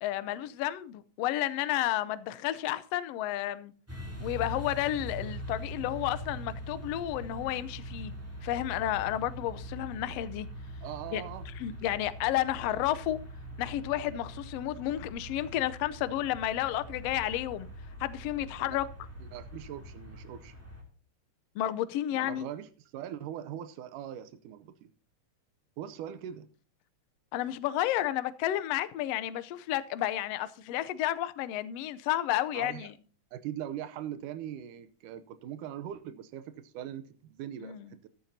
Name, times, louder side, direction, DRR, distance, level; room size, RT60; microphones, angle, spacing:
voice 1, 0.0-3.7 4.2-8.1 8.4-10.5 11.1-11.2 11.6-13.2 13.6-17.7 18.0-18.9 21.5-22.5 27.3-32.9 37.6-37.9, left 13 dB, 75° left, 1.5 m, -31 dB
sound 1, 3.9-20.8, equal, 5° right, 2.2 m, -42 dB
voice 2, 10.8-11.5 18.6-18.8 19.2-20.5 22.1-24.9 25.8-26.5 32.5-32.9 33.3-38.1, right 10 dB, 85° right, 2.3 m, -41 dB
14.0 x 12.0 x 2.7 m
omnidirectional pair, 3.6 m